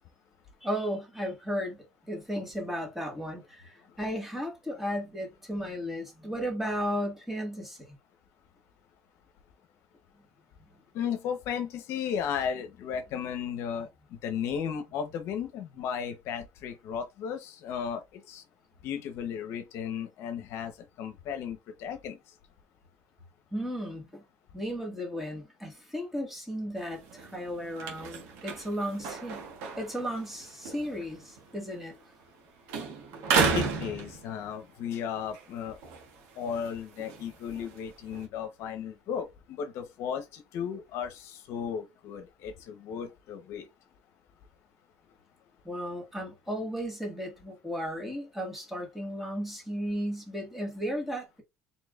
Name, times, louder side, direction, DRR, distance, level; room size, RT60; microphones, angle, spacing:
voice 1, 0.6-7.9 23.5-24.2 24.5-29.4 29.8-32.0 45.6-51.4, equal, 5° right, 1.7 m, -35 dB
voice 2, 10.9-18.4 18.8-20.7 21.0-22.2 33.5-35.8 36.4-43.7, left 7 dB, 65° left, 0.8 m, -35 dB
sound 1, 26.8-32.4 32.7-34.7 35.2-38.3, right 5 dB, 85° right, 1.7 m, -34 dB
4.5 x 3.4 x 2.4 m
cardioid pair, 145°, 5 cm